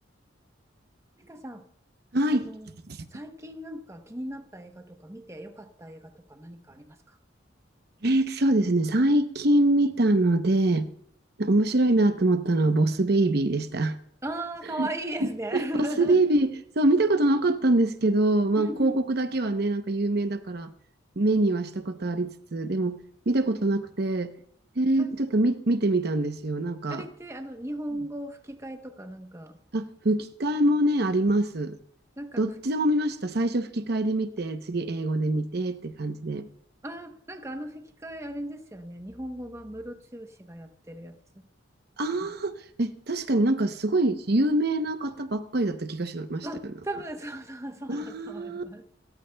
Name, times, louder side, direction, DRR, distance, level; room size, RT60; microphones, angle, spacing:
voice 1, 1.2-1.7 2.3-2.7 3.1-7.2 14.2-16.2 18.6-19.0 24.9-25.1 26.9-29.6 32.2-32.5 36.8-41.4 46.4-48.8, right 1 dB, 15° right, 0.9 m, -37 dB
voice 2, 2.1-2.5 2.9-3.1 8.0-10.9 11.4-14.0 14.8-14.9 15.5-15.6 16.0-20.7 21.2-24.3 24.8-27.0 29.7-31.8 32.4-36.5 42.0-46.5 47.9-48.6, right 1 dB, 55° right, 0.8 m, -24 dB
29.0 x 14.0 x 2.3 m
head